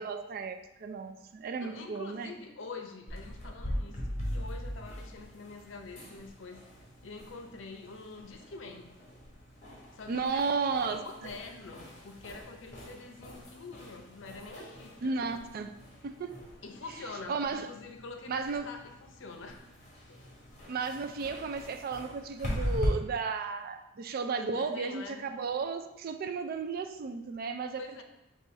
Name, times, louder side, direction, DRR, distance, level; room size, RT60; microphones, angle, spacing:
voice 1, 0.0-2.4 10.1-11.0 15.0-15.8 16.0-16.3 17.3-17.7 18.3-18.7 20.7-28.0, right 4 dB, 50° right, 8 dB, 0.3 m, -34 dB
voice 2, 1.6-6.7 7.0-8.9 9.9-15.2 16.6-19.7 20.1-20.2 24.4-25.2 27.8-28.0, left 3 dB, 70° left, 4 dB, 0.6 m, -46 dB
sound 1, 3.1-22.9, equal, 40° left, 1.3 m, -42 dB
5.3 x 2.4 x 4.1 m, 0.95 s
head